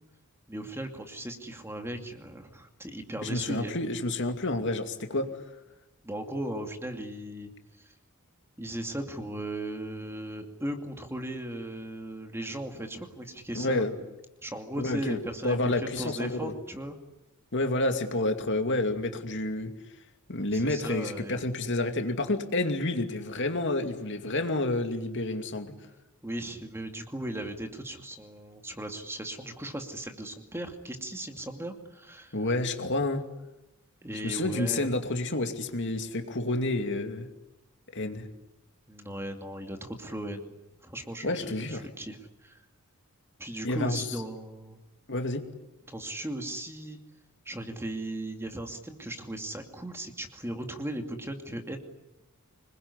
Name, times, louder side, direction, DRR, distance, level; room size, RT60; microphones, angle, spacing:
voice 1, 0.5-3.8 6.0-7.5 8.6-13.9 14.4-17.0 20.5-21.5 26.2-32.4 34.0-34.9 38.9-40.5 40.8-42.6 43.4-44.8 45.9-47.0 47.5-51.8, right 1 dB, 10° right, 5 dB, 2.5 m, -37 dB
voice 2, 3.2-5.3 13.5-13.9 14.8-15.2 15.4-16.5 17.5-19.7 20.3-25.7 32.3-33.2 34.2-37.3 37.9-38.3 41.2-41.8 43.6-44.2 45.1-45.4, left 2 dB, 55° left, 6 dB, 2.6 m, -29 dB
26.0 x 21.5 x 9.9 m, 0.99 s
head